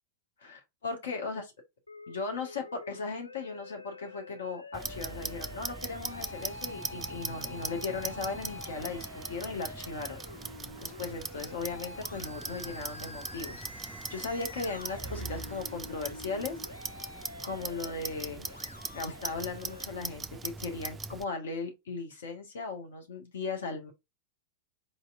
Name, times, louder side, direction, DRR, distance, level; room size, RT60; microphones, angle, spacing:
voice 1, 0.4-1.4 2.1-16.6 17.4-18.5 18.9-23.9, left 4 dB, 65° left, 0.9 m, -37 dB
Musical instrument, 1.9-19.8, left 3 dB, 80° left, 0.4 m, -47 dB
Clock, 4.7-21.2, right 4 dB, 15° right, 0.3 m, -40 dB
4.3 x 2.8 x 2.4 m
figure-of-eight pair, 90°, 0 cm